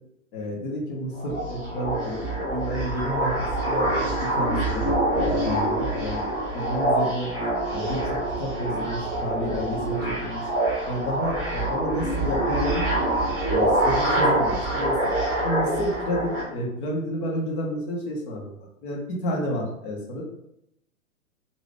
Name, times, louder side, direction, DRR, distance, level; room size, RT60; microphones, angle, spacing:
voice 1, 0.3-6.2 6.5-7.3 7.7-10.5 10.9-12.9 13.5-15.0 15.4-18.5 18.8-20.2, equal, 35° left, -2 dB, 1.0 m, -30 dB
sound 1, 1.1-16.4, right 1 dB, 5° right, 1.0 m, -25 dB
2.9 x 2.6 x 3.4 m, 0.80 s
figure-of-eight pair, 115°, 42 cm